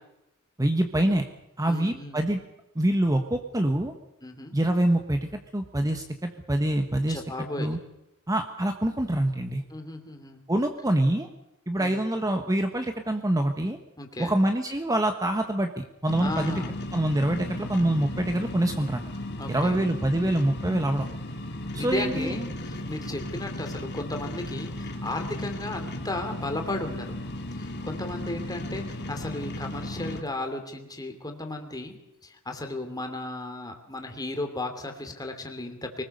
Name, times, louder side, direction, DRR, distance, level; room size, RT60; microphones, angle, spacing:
voice 1, 0.6-1.2 1.6-2.4 2.7-3.9 4.5-7.2 7.6-7.8 8.3-9.6 10.5-11.3 11.7-13.8 14.2-16.5 16.9-19.0 19.5-21.1 21.7-22.3, right 1 dB, 15° right, 5 dB, 1.2 m, -25 dB
voice 2, 1.7-2.2 4.2-4.5 7.1-7.8 9.7-10.4 11.8-12.1 14.0-14.4 16.2-16.7 19.4-19.8 21.8-27.1 27.6-32.0 32.2-36.0, left 2 dB, 20° left, 4 dB, 2.8 m, -35 dB
sound 1, 16.1-30.2, left 1 dB, 50° left, 2.8 m, -35 dB
24.5 x 20.0 x 6.7 m, 0.86 s
head